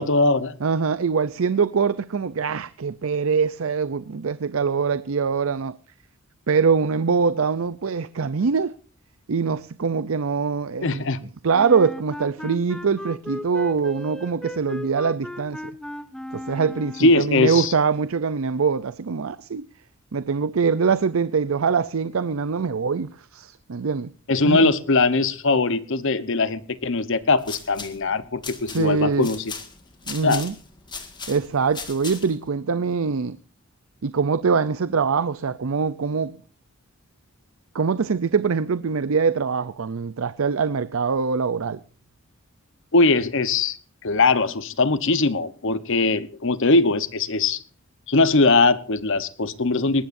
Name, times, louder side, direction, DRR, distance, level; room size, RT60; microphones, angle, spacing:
voice 1, 0.0-0.6 10.8-11.2 17.0-17.7 24.3-29.4 30.2-30.4 42.9-43.8 44.0-47.6 48.1-50.1, left 3 dB, 65° left, 1.0 m, -20 dB
voice 2, 0.6-5.8 6.5-8.7 9.3-11.0 11.4-15.6 16.3-19.7 20.1-24.1 24.4-24.7 28.7-29.3 30.1-30.5 31.3-33.4 34.0-36.4 37.7-41.8, right 5 dB, 70° right, 0.6 m, -23 dB
Wind instrument woodwind instrument, 11.5-17.3, left 1 dB, 5° left, 0.6 m, -36 dB
sound 1, 27.2-32.5, left 5 dB, 20° left, 1.8 m, -38 dB
20.0 x 19.0 x 2.6 m
head